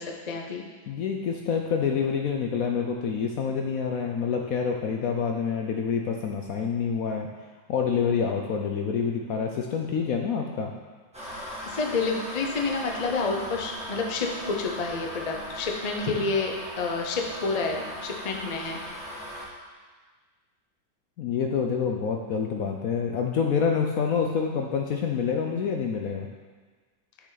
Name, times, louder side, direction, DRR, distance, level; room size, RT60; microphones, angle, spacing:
voice 1, 0.0-0.7 11.7-18.8, left 4 dB, 55° left, 1 dB, 0.4 m, -29 dB
voice 2, 0.9-7.3 7.7-10.7 21.2-26.3, left 6 dB, 70° left, 2 dB, 0.8 m, -27 dB
sound 1, 11.1-19.4, equal, 5° right, 1.5 m, -38 dB
9.1 x 6.6 x 4.0 m, 1.4 s
omnidirectional pair, 2.0 m